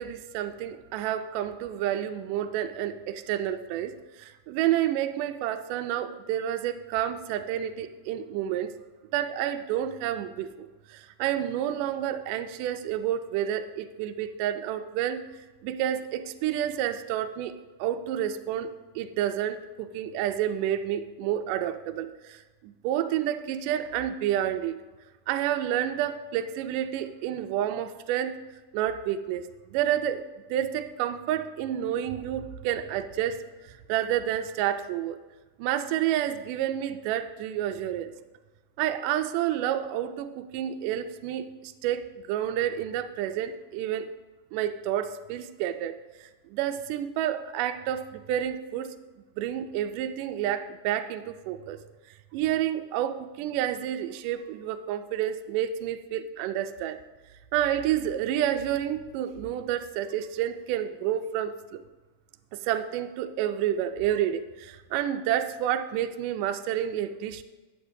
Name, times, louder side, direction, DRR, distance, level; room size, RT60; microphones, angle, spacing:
voice 1, 0.0-8.7 9.1-15.2 15.6-17.5 17.8-18.7 19.0-24.8 25.3-28.3 28.7-30.3 30.5-35.2 35.6-38.1 38.8-44.1 44.5-46.0 46.2-48.9 49.4-51.8 52.3-57.0 57.5-61.8 62.5-67.4, right 11 dB, 80° right, 8 dB, 2.0 m, -29 dB
12.0 x 9.2 x 2.7 m, 1.2 s
omnidirectional pair, 4.1 m